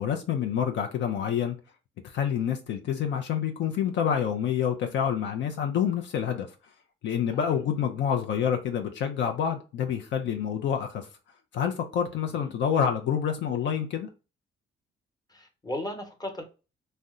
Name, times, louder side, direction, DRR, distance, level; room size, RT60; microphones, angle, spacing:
voice 1, 0.0-1.6 2.1-6.5 7.0-11.1 11.5-14.1, left 8 dB, 65° left, 0.5 m, -27 dB
voice 2, 15.3-16.4, left 1 dB, 20° left, 0.9 m, -37 dB
2.6 x 2.1 x 3.5 m
supercardioid pair, 70°, 21 cm